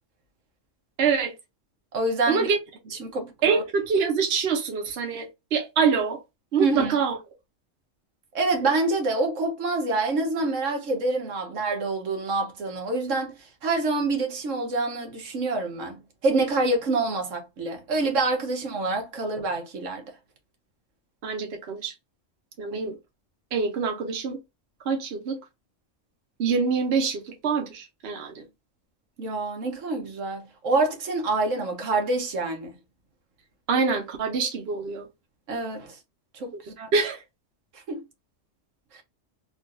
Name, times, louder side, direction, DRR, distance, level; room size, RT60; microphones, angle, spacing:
voice 1, 1.0-1.3 2.3-2.6 3.4-6.2 6.5-7.2 21.2-21.9 22.6-23.0 23.5-24.4 24.8-25.4 26.4-28.4 33.7-35.1 36.9-37.2, right 5 dB, 60° right, 1.0 m, -25 dB
voice 2, 1.9-2.5 2.9-3.6 6.6-7.0 8.3-13.3 13.6-16.0 16.2-20.0 22.7-22.8 29.2-32.7 35.5-36.0 36.3-36.9 37.7-38.0 38.9-39.0, right 3 dB, 80° right, 1.3 m, -26 dB
3.7 x 2.4 x 2.5 m
omnidirectional pair, 1.3 m